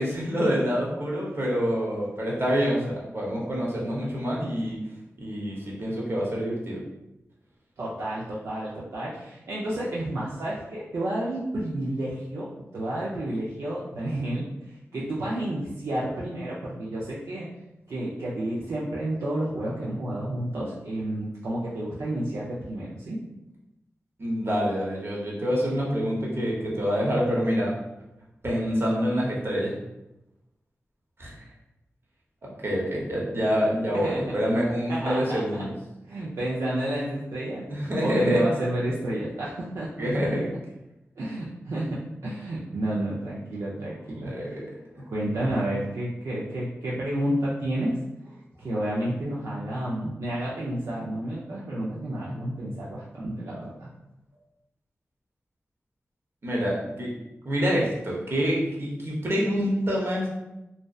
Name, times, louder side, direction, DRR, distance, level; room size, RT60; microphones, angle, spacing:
voice 1, 0.0-4.8 5.2-6.8 24.2-27.7 28.4-29.7 31.2-31.4 32.6-35.7 37.7-38.5 40.0-40.4 44.2-44.7 44.9-45.0 56.4-57.1 57.4-60.3, equal, 50° right, -4 dB, 0.8 m, -26 dB
voice 2, 7.8-14.5 14.9-17.5 17.9-23.2 33.9-34.4 34.9-35.6 36.1-39.9 40.2-40.3 41.2-44.3 45.1-48.0 48.2-53.9, right 1 dB, 75° right, -7 dB, 0.4 m, -30 dB
2.6 x 2.0 x 2.3 m, 0.92 s
cardioid pair, 60°, 5 cm